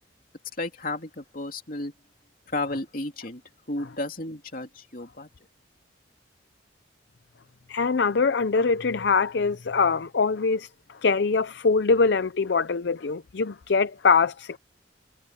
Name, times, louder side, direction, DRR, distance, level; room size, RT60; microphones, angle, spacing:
voice 1, 0.6-1.9 2.5-3.4 3.7-5.3, left 2 dB, 45° left, 3.0 m, -33 dB
voice 2, 7.7-14.6, left 4 dB, 65° left, 0.6 m, -23 dB
head